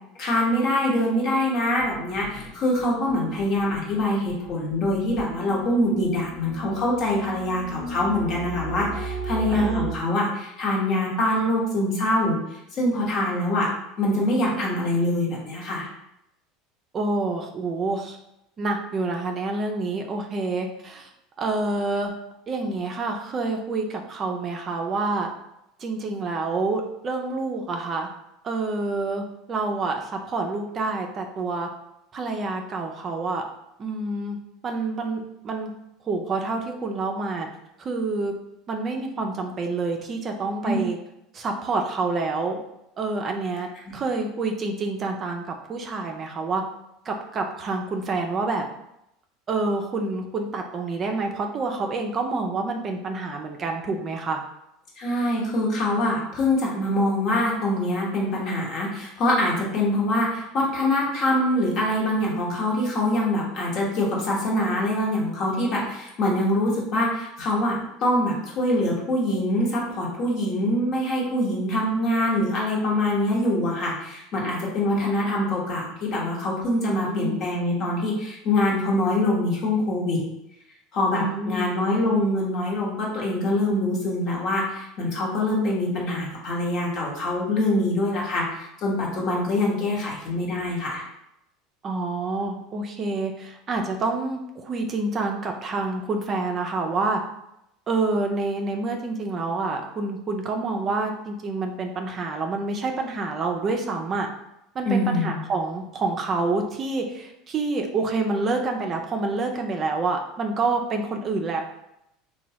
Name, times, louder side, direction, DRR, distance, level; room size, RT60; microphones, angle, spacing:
voice 1, 0.2-13.7 14.0-15.9 40.6-40.7 55.0-80.2 80.9-91.0 104.8-105.4, left 1 dB, 50° left, -3 dB, 1.0 m, -24 dB
sound 1, 1.8-9.9, right 4 dB, 15° left, 0.9 m, -36 dB
voice 2, 9.5-9.9 16.9-18.2 18.6-21.1 21.4-22.1 22.5-25.3 25.8-28.1 28.4-31.7 32.1-33.4 33.8-35.7 36.0-37.5 37.8-38.3 38.7-41.0 41.3-42.6 43.0-46.6 47.1-48.6 49.5-54.4 77.0-77.4 81.1-81.7 91.8-97.2 97.9-104.3 104.7-111.6, right 3 dB, 35° right, 3 dB, 0.4 m, -27 dB
3.0 x 2.2 x 2.8 m, 0.82 s
supercardioid pair, 120°, 0 cm